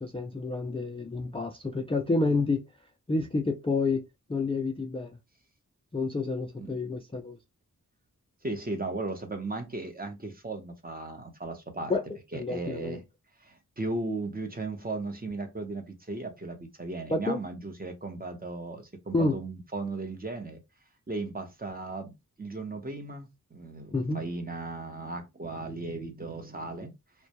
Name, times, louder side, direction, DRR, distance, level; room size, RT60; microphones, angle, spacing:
voice 1, 0.0-2.6 3.1-5.1 5.9-7.4 11.9-12.0 12.3-13.0 17.1-17.4 19.1-19.4 23.9-24.2, left 3 dB, 15° left, 0.3 m, -29 dB
voice 2, 8.4-12.0 12.3-13.0 13.4-20.6 21.1-26.9, right 2 dB, 25° right, 0.7 m, -36 dB
2.2 x 2.1 x 2.8 m
wide cardioid pair, 75°, 34 cm